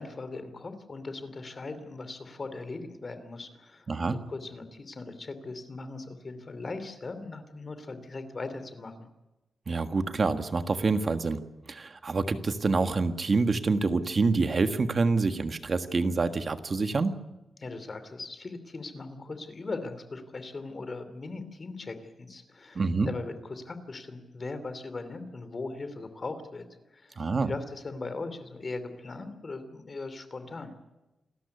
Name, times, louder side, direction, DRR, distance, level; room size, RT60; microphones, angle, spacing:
voice 1, 0.0-9.1 17.6-26.6 26.9-30.7, left 3 dB, 35° left, 11 dB, 2.8 m, -39 dB
voice 2, 3.9-4.2 9.7-11.4 11.7-17.2 22.7-23.1 27.2-27.5, right 3 dB, 35° right, 9 dB, 1.5 m, -27 dB
28.0 x 13.5 x 8.3 m, 1.0 s
wide cardioid pair, 140°, 0 cm